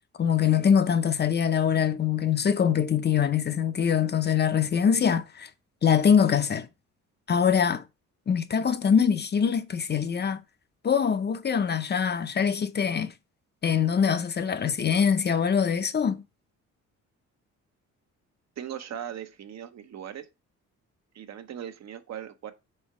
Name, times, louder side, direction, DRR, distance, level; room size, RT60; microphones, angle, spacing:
voice 1, 0.2-5.5 5.8-6.7 7.3-7.8 8.3-10.4 10.8-13.1 13.6-16.2, left 7 dB, 35° left, 0.6 m, -23 dB
voice 2, 18.6-20.3 21.1-22.5, right 9 dB, 60° right, 0.9 m, -39 dB
4.5 x 4.4 x 4.7 m
cardioid pair, 90°, 30 cm